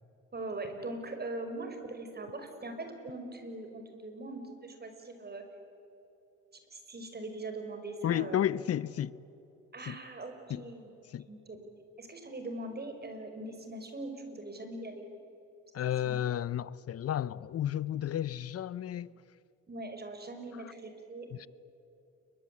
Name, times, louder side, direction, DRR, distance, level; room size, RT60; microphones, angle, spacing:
voice 1, 0.3-5.4 6.7-8.5 9.7-10.9 11.3-11.6 12.0-15.1 16.0-16.2 19.7-21.3, right 2 dB, 30° right, 5.5 m, -41 dB
voice 2, 8.0-9.1 9.9-10.0 10.5-10.6 11.1-11.3 15.7-19.1 21.3-21.5, left 11 dB, 50° left, 0.7 m, -32 dB
29.0 x 23.5 x 8.6 m
cardioid pair, 90°, 30 cm